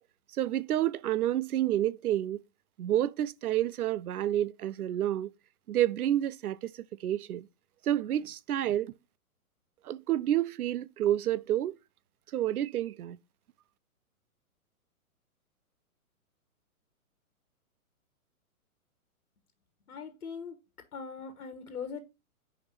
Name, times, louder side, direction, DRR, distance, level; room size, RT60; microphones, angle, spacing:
voice 1, 0.4-2.4 2.8-5.3 5.7-7.5 7.8-8.9 9.8-11.8 12.3-13.2, right 12 dB, 85° right, 0.5 m, -29 dB
voice 2, 19.9-20.6 20.9-22.0, left 6 dB, 85° left, 1.4 m, -40 dB
5.2 x 4.8 x 4.3 m
hypercardioid pair, 135°, 43 cm